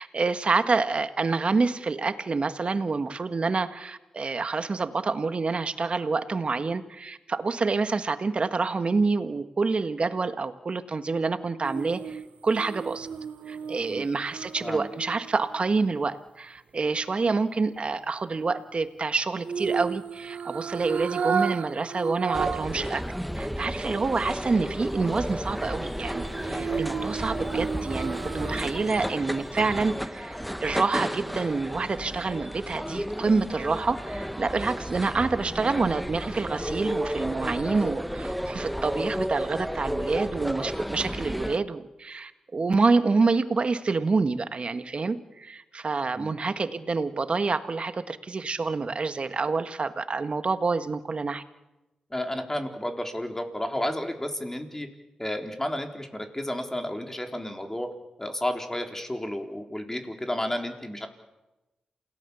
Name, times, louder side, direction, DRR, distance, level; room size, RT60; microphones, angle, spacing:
voice 1, 0.0-13.1 13.5-23.0 23.3-51.4, right 4 dB, 50° right, 10 dB, 1.6 m, -27 dB
sound 1, 11.6-15.9 19.4-22.8 23.2-23.3 26.1-29.0 29.4-29.5, right 6 dB, 75° right, 0.8 m, -33 dB
sound 2, 22.3-41.6, equal, ahead, 1.1 m, -33 dB
voice 2, 52.1-54.9 55.2-57.9 58.2-61.1, left 1 dB, 15° left, 4 dB, 4.0 m, -32 dB
28.0 x 18.0 x 7.1 m, 1.0 s
supercardioid pair, 45°, 2 cm